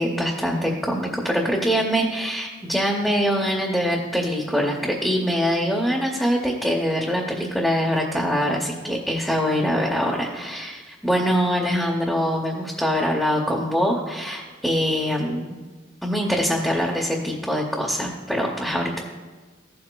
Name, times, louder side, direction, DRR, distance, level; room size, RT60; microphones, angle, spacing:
voice 1, 0.0-15.6 16.0-19.0, equal, ahead, -3 dB, 0.8 m, -23 dB
15.0 x 7.7 x 2.3 m, 1.4 s
head